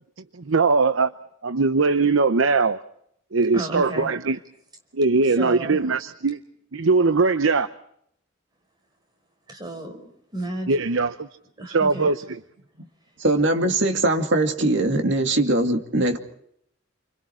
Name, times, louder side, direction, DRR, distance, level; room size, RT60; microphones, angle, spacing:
voice 1, 0.3-1.1 1.4-2.8 3.3-4.4 4.9-6.4 6.7-7.7 10.7-11.3 11.7-12.4, right 4 dB, 85° right, 0.8 m, -20 dB
voice 2, 3.5-4.1 5.1-5.8 9.5-10.7 11.6-12.1, right 1 dB, 20° right, 5.3 m, -33 dB
voice 3, 13.2-16.2, right 2 dB, 65° right, 2.3 m, -21 dB
28.5 x 25.5 x 4.5 m
head